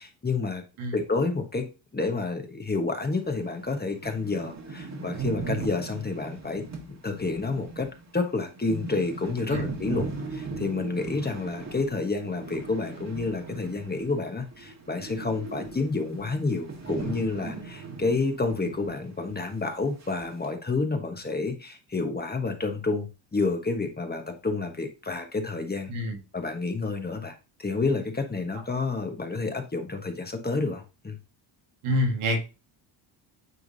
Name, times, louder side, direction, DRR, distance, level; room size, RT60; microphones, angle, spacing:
voice 1, 0.0-0.6 0.9-1.7 1.9-10.1 10.3-25.9 26.3-31.2, left 3 dB, 20° left, 5 dB, 1.2 m, -29 dB
sound 1, 3.3-3.4 3.8-14.3 14.5-19.0 19.3-19.4 20.0-20.5, right 4 dB, 35° right, 1.7 m, -38 dB
voice 2, 31.8-32.4, left 1 dB, 80° right, 2 dB, 1.9 m, -26 dB
9.3 x 3.6 x 2.7 m, 0.30 s
cardioid pair, 80°, 49 cm